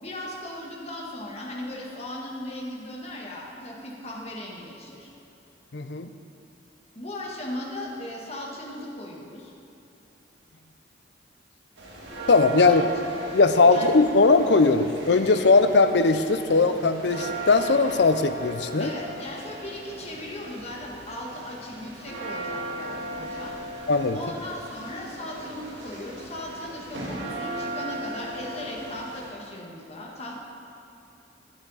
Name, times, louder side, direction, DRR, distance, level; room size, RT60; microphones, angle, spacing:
voice 1, 0.0-5.1 6.9-9.5 12.6-12.8 13.7-13.9 18.8-23.5 24.1-30.4, left 1 dB, 35° left, -2 dB, 1.6 m, -37 dB
voice 2, 5.7-6.1 12.3-12.8 13.3-18.9 23.9-24.2, left 3 dB, 65° left, 9 dB, 0.6 m, -19 dB
sound 1, 11.8-29.3, right 1 dB, 70° right, 2.0 m, -37 dB
13.0 x 8.8 x 4.1 m, 2.9 s
head